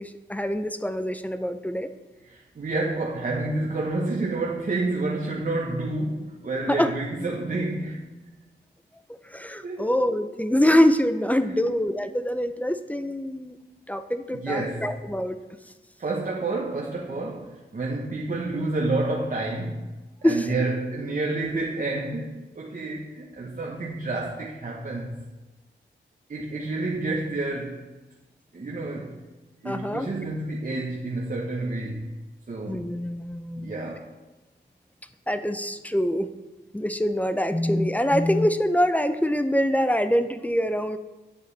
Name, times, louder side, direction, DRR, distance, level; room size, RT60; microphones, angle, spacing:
voice 1, 0.0-1.9 6.7-6.9 9.3-13.6 13.9-15.4 20.2-20.5 29.6-30.1 32.7-33.9 35.3-36.3 36.7-41.0, equal, 5° left, 10 dB, 0.6 m, -24 dB
voice 2, 2.3-8.1 9.6-10.0 11.5-11.7 14.3-14.9 16.0-19.9 20.2-25.2 26.3-27.8 28.5-29.2 29.6-32.1 32.5-32.9 33.6-34.1, right 2 dB, 45° right, -3 dB, 1.1 m, -29 dB
9.6 x 6.5 x 3.4 m, 1.1 s
cardioid pair, 55°, 19 cm